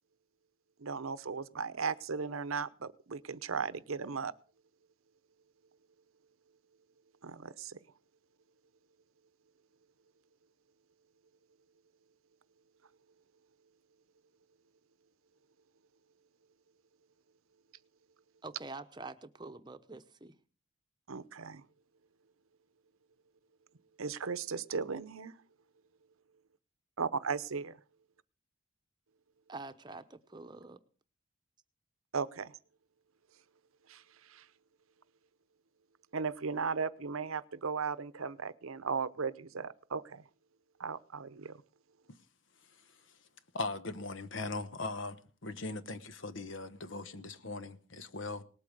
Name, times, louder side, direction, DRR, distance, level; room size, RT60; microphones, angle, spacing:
voice 1, 0.8-4.3 7.2-7.8 21.1-21.6 24.0-25.4 27.0-27.8 32.1-32.5 33.9-34.0 34.3-34.4 36.1-40.2 40.8-41.6, right 5 dB, 85° right, 0.8 m, -36 dB
voice 2, 18.4-20.3 29.5-30.8, right 3 dB, 20° right, 0.9 m, -46 dB
voice 3, 43.5-48.4, left 3 dB, 65° left, 1.1 m, -39 dB
19.0 x 8.5 x 6.6 m
head